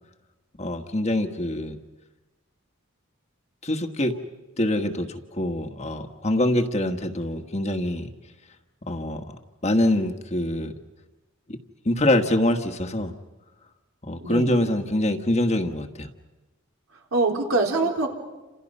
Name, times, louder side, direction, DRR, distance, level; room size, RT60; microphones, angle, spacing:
voice 1, 0.6-1.8 3.6-4.2 4.6-8.1 8.9-9.2 9.6-10.7 11.5-11.6 11.8-13.1 14.0-16.1, left 1 dB, 30° left, 5 dB, 1.4 m, -24 dB
voice 2, 14.2-14.6 17.1-18.1, right 3 dB, 80° right, 1 dB, 3.9 m, -23 dB
29.5 x 27.5 x 5.5 m, 1.2 s
head